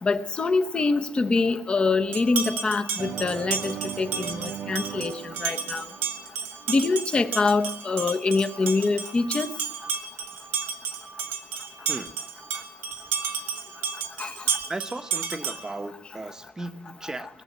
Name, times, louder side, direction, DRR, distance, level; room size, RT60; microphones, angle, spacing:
voice 1, 0.0-5.8 6.7-9.5 14.2-14.3, left 3 dB, 25° left, 0.9 m, -25 dB
sound 1, 2.1-15.8, right 6 dB, 80° right, 2.0 m, -32 dB
sound 2, 3.0-6.8, right 8 dB, 50° right, 0.6 m, -38 dB
voice 2, 14.7-17.3, right 2 dB, 15° right, 1.0 m, -36 dB
20.5 x 7.1 x 9.4 m
cardioid pair, 130°, 4 cm